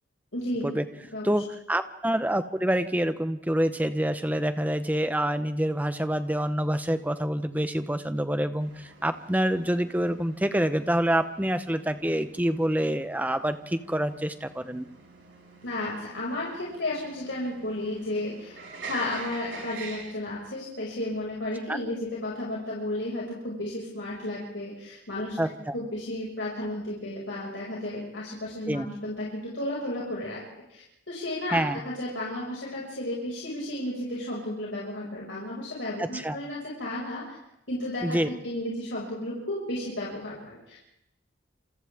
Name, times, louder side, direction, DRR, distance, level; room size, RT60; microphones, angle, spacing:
voice 1, 0.3-0.6 1.1-1.4 15.6-18.5 18.9-25.3 25.7-30.4 30.7-37.4 37.7-38.2 38.4-40.8, left 1 dB, 80° left, -5 dB, 5.9 m, -33 dB
voice 2, 1.2-14.9 21.7-21.8 25.4-25.7 28.7-28.9 31.5-31.8 36.0-36.4 38.0-38.3, right 1 dB, 10° right, 10 dB, 0.9 m, -27 dB
sound 1, 8.6-20.1, right 4 dB, 85° right, 6.6 m, -46 dB
28.0 x 27.5 x 3.6 m, 0.82 s
head